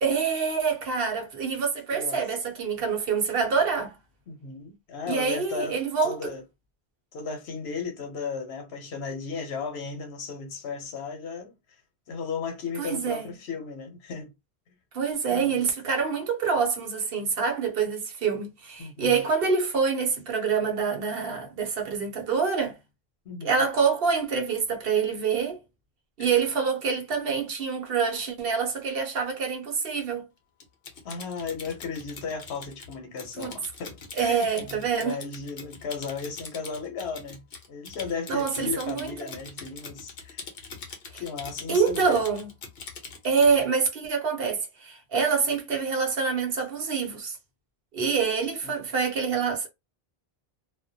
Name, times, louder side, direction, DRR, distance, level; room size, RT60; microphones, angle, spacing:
voice 1, 0.0-3.9 5.1-6.3 12.8-13.3 14.9-22.7 23.4-25.6 26.2-30.3 33.4-33.5 34.2-35.2 38.3-39.3 41.1-41.2 41.7-42.5 43.2-47.4 47.9-49.7, right 5 dB, 65° right, 0.9 m, -26 dB
voice 2, 4.3-5.8 6.0-6.4 7.1-11.5 12.1-14.3 15.3-15.6 18.8-19.2 23.2-23.6 31.0-37.4 37.7-40.5 41.1-42.2 48.6-49.0, left 5 dB, 85° left, 1.0 m, -35 dB
Typing, 30.6-43.6, left 5 dB, 65° left, 0.9 m, -43 dB
2.4 x 2.1 x 2.6 m
omnidirectional pair, 1.0 m